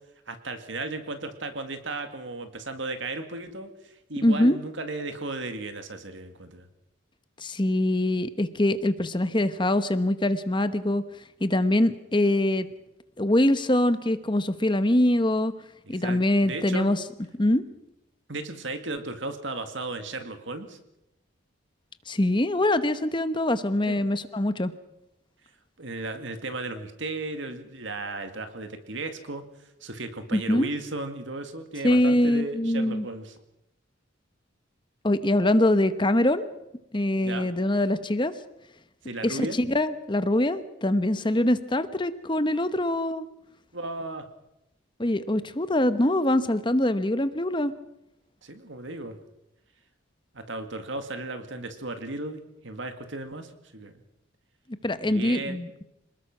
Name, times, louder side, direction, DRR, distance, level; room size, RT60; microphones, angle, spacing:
voice 1, 0.3-6.7 15.8-16.9 18.3-20.8 23.9-24.0 25.8-29.4 29.8-33.3 37.2-37.5 39.0-39.6 43.7-44.2 48.4-49.2 50.3-54.0 55.0-55.6, right 2 dB, 65° right, 7 dB, 2.2 m, -35 dB
voice 2, 4.2-4.6 7.4-11.0 11.4-12.7 13.2-15.5 15.9-17.0 17.4-17.6 22.1-24.7 30.3-30.7 31.8-33.0 35.0-36.5 36.9-38.3 39.2-43.3 45.0-47.7 54.8-55.7, left 1 dB, 25° left, 11 dB, 1.0 m, -23 dB
27.0 x 20.0 x 6.1 m, 0.87 s
head